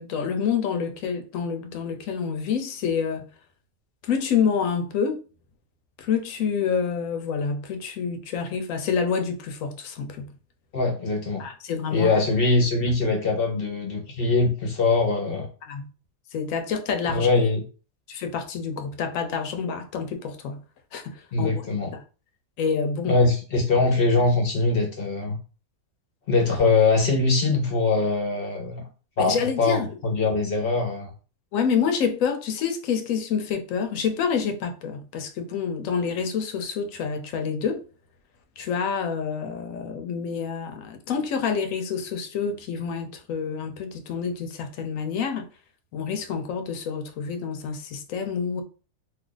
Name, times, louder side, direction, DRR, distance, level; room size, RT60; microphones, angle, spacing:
voice 1, 0.0-3.2 4.1-5.2 6.0-10.3 11.4-12.2 15.7-15.9 16.3-17.3 18.1-20.6 20.9-21.0 21.4-21.6 22.6-23.2 29.2-29.9 31.5-37.8 38.6-45.5 45.9-48.6, left 6 dB, 80° left, 1.0 m, -27 dB
voice 2, 10.7-11.5 11.9-15.5 17.0-17.6 21.3-21.9 23.1-25.4 26.3-28.8 29.2-31.1, left 3 dB, 50° left, 0.8 m, -22 dB
2.7 x 2.4 x 3.8 m
omnidirectional pair, 1.4 m